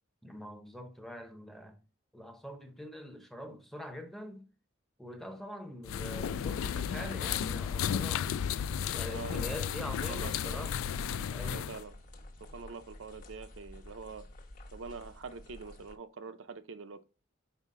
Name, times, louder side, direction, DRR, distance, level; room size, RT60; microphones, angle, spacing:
voice 1, 0.2-1.8 2.1-4.5 5.0-8.4 8.9-10.7 11.3-11.7, equal, ahead, 0.7 m, -44 dB
sound 1, 5.9-11.8, left 8 dB, 80° left, 0.3 m, -33 dB
sound 2, 6.6-15.9, left 1 dB, 40° left, 1.0 m, -52 dB
voice 2, 9.1-9.7 10.0-10.6 11.5-11.9 12.4-14.3 14.7-17.0, right 5 dB, 65° right, 0.5 m, -45 dB
5.6 x 4.8 x 3.6 m
head